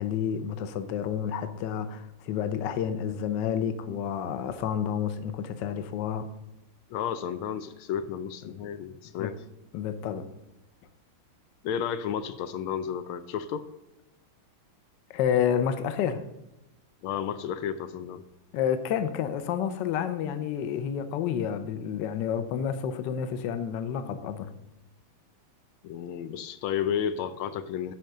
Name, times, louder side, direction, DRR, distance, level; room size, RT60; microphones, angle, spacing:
voice 1, 0.0-6.3 8.6-8.7 9.2-9.3 9.7-10.3 15.1-16.2 18.5-24.5, left 8 dB, 65° left, 1.3 m, -29 dB
voice 2, 6.9-9.3 11.6-13.7 17.0-18.2 25.8-27.9, left 8 dB, 80° left, 1.5 m, -32 dB
10.5 x 4.9 x 6.5 m
omnidirectional pair, 2.3 m